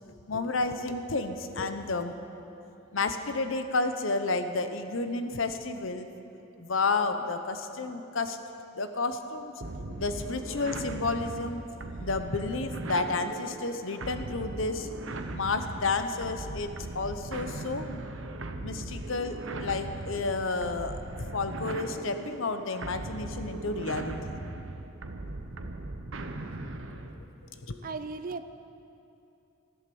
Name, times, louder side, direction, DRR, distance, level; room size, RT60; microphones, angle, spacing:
voice 1, 0.0-2.2 2.9-6.1 6.6-8.4 8.8-9.5 10.0-11.6 12.0-14.9 15.3-18.0 18.6-24.3 26.9-27.0 27.5-27.8, left 3 dB, 70° left, 8 dB, 0.9 m, -31 dB
sound 1, 9.6-27.2, right 2 dB, 70° right, 0.9 m, -39 dB
voice 2, 27.8-28.5, right 4 dB, 40° right, 10 dB, 0.5 m, -36 dB
14.0 x 11.5 x 7.0 m, 2.8 s
head